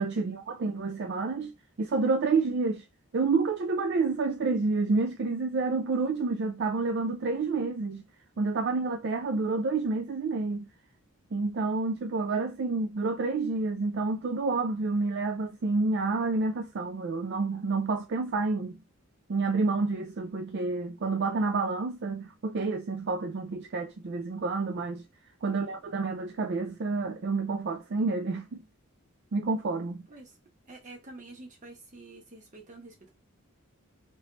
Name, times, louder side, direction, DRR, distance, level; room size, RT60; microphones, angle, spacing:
voice 1, 0.0-2.8 3.1-8.0 8.4-10.7 11.3-18.8 19.3-25.0 25.4-28.6 29.3-30.1, right 3 dB, 55° right, 0.4 m, -29 dB
voice 2, 30.7-33.1, right 2 dB, 35° right, 1.1 m, -48 dB
3.1 x 3.0 x 2.9 m
head